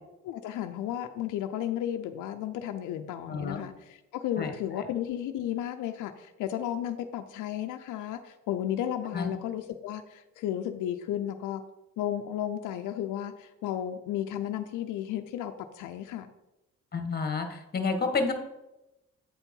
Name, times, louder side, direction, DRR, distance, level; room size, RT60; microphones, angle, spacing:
voice 1, 0.2-11.6 12.0-16.3, left 11 dB, 85° left, 7 dB, 0.5 m, -33 dB
voice 2, 3.3-3.6 4.4-4.5 9.1-9.3 16.9-17.5 17.7-18.3, left 4 dB, 30° left, 6 dB, 1.3 m, -29 dB
8.4 x 4.5 x 5.3 m, 0.97 s
cardioid pair, 90°, 30 cm